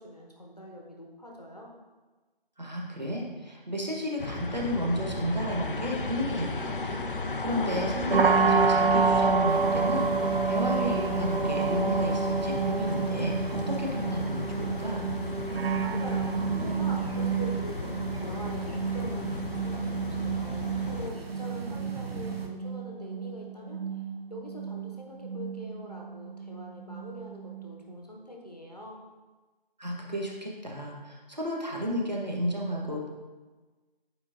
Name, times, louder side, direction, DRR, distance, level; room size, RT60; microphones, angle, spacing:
voice 1, 0.0-1.7 15.8-23.8 24.3-29.0, equal, 40° left, -1 dB, 1.0 m, -43 dB
voice 2, 2.6-15.1 29.8-33.1, equal, 45° right, -1 dB, 1.0 m, -32 dB
sound 1, 4.2-21.1, left 3 dB, 60° left, 0.5 m, -35 dB
sound 2, 8.1-27.9, right 5 dB, 70° right, 0.5 m, -29 dB
sound 3, 9.5-22.5, right 2 dB, 90° right, 0.9 m, -44 dB
8.2 x 4.8 x 2.5 m, 1.3 s
figure-of-eight pair, 175°, 29 cm